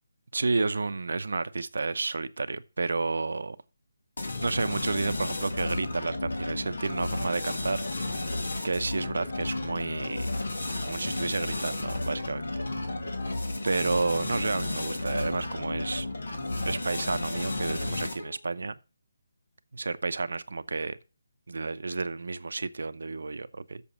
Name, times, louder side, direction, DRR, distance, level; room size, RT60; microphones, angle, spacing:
voice 1, 0.3-3.6 4.4-8.1 8.6-10.4 10.8-12.7 13.6-16.1 16.6-18.8 19.7-21.0 21.5-23.8, right 3 dB, 75° right, 0.7 m, -31 dB
sound 1, 4.2-18.4, left 2 dB, 90° left, 2.4 m, -33 dB
7.1 x 6.9 x 5.9 m
hypercardioid pair, 170°, 0 cm